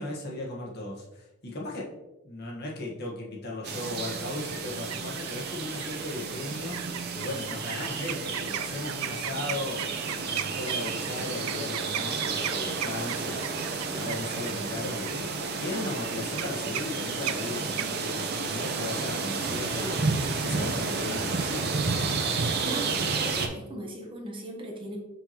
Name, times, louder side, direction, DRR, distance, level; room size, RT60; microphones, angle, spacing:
voice 1, 0.0-1.9 2.2-6.8 7.1-9.9 10.2-13.5 13.9-21.6, left 2 dB, 50° left, -3 dB, 1.4 m, -37 dB
sound 1, 3.6-23.5, right 4 dB, 50° right, 0.8 m, -31 dB
sound 2, 4.7-5.4 5.8-6.1 6.7-18.7, right 12 dB, 80° right, 0.3 m, -37 dB
voice 2, 22.6-25.0, right 1 dB, 25° right, 0 dB, 1.1 m, -38 dB
5.8 x 5.5 x 2.9 m, 0.97 s
head